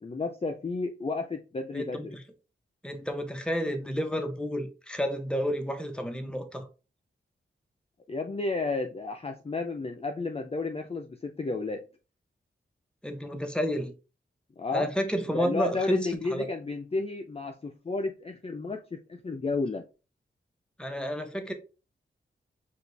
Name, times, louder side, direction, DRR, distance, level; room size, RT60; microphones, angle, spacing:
voice 1, 0.0-2.2 8.1-11.9 14.6-14.9 15.3-19.9, left 3 dB, 30° left, 0.5 m, -32 dB
voice 2, 1.7-2.2 2.8-6.7 13.0-13.9 14.7-16.5 20.8-21.5, equal, 5° left, 1.0 m, -31 dB
5.1 x 2.5 x 3.3 m
cardioid pair, 55°, 21 cm